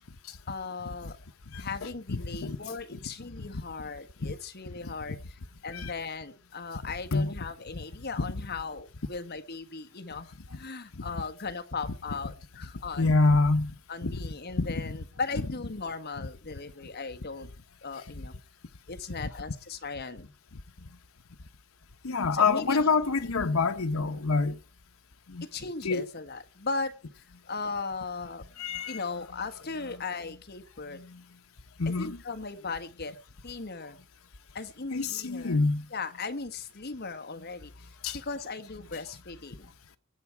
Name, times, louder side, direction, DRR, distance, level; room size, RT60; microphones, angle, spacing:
voice 1, 0.5-1.2 1.5-13.1 13.9-17.5 17.8-18.3 18.9-20.3 22.3-22.9 25.4-28.4 28.9-31.0 31.8-33.2 33.4-34.0 34.5-35.6 35.9-37.9 38.1-39.7, left 4 dB, 50° left, 1.4 m, -38 dB
voice 2, 1.5-2.6 2.9-3.0 3.4-3.5 4.2-4.3 4.8-4.9 5.7-5.9 7.1-7.3 8.2-8.3 13.0-13.7 14.0-14.2 14.6-14.8 22.0-24.6 25.3-25.4 25.8-26.1 28.6-29.0 30.9-31.2 31.8-32.2 34.9-35.8 38.0-38.2, left 3 dB, 85° left, 0.9 m, -27 dB
18.5 x 9.6 x 4.6 m
head